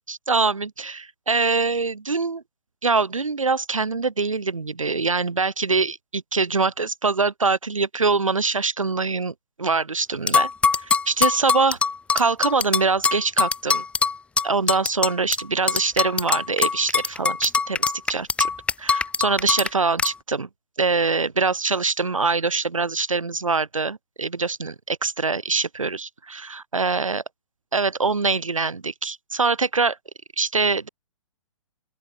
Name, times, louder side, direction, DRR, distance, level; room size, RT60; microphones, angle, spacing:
voice 1, 0.0-2.4 2.8-10.5 10.8-11.8 12.1-13.8 14.4-18.5 18.8-20.5 20.8-27.2 27.7-30.0 30.4-30.9, right 4 dB, 75° right, 2.0 m, -24 dB
sound 1, 10.3-15.4 15.7-19.7 20.0-20.1, left 4 dB, 5° left, 1.2 m, -22 dB
open air
figure-of-eight pair, 120°, 17 cm